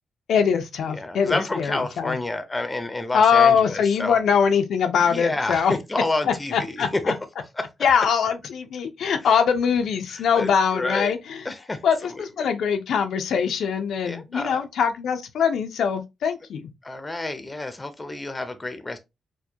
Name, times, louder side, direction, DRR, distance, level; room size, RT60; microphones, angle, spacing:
voice 1, 0.3-2.2 3.1-5.7 6.3-7.1 7.8-11.4 11.8-16.7, left 7 dB, 80° left, 0.5 m, -22 dB
voice 2, 0.9-4.2 5.0-7.1 7.4-7.7 9.2-9.4 10.1-11.1 11.4-12.5 14.1-14.6 16.8-19.0, left 2 dB, 15° left, 0.6 m, -29 dB
4.4 x 2.2 x 2.7 m
cardioid pair, 120°, 0 cm